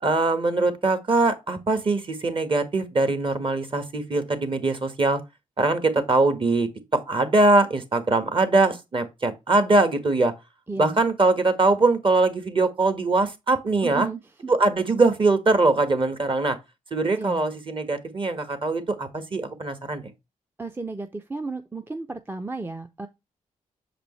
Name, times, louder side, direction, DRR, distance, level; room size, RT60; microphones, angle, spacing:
voice 1, 0.0-5.2 5.6-10.3 10.8-14.1 14.5-16.6 16.9-20.1, right 3 dB, 40° right, 1.6 m, -22 dB
voice 2, 10.7-11.0 13.8-14.5 17.2-17.4 20.6-23.1, right 3 dB, 15° right, 0.6 m, -34 dB
6.9 x 5.1 x 3.2 m
cardioid pair, 75°, 14 cm